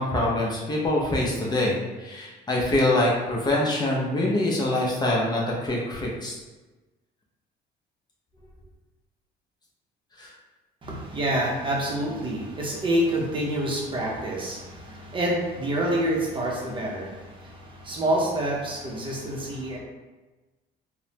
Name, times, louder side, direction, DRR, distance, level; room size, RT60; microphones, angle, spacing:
voice 1, 0.0-6.3 10.2-10.3, left 1 dB, 25° left, -3 dB, 0.6 m, -24 dB
voice 2, 10.8-19.8, right 1 dB, 30° right, -3 dB, 0.6 m, -27 dB
3.1 x 2.0 x 2.8 m, 1.2 s
cardioid pair, 110°, 17 cm